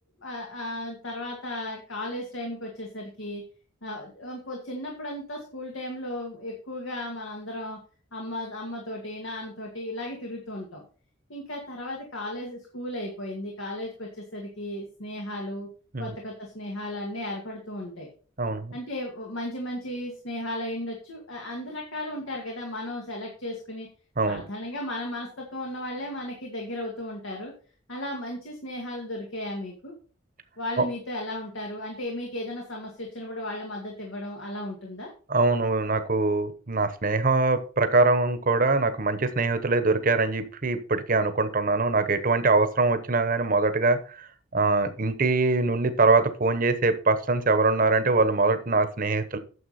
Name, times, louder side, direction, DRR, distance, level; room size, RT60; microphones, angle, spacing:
voice 1, 0.2-3.4 3.8-7.8 8.1-10.8 11.3-15.7 16.0-18.1 18.7-23.9 24.3-27.5 27.9-29.9 30.6-35.1, left 1 dB, 85° left, 0 dB, 2.1 m, -35 dB
voice 2, 18.4-18.7 24.2-24.4 30.8-30.9 35.3-44.3 44.5-49.4, right 3 dB, 45° right, 10 dB, 1.0 m, -23 dB
9.6 x 7.0 x 4.2 m, 0.39 s
head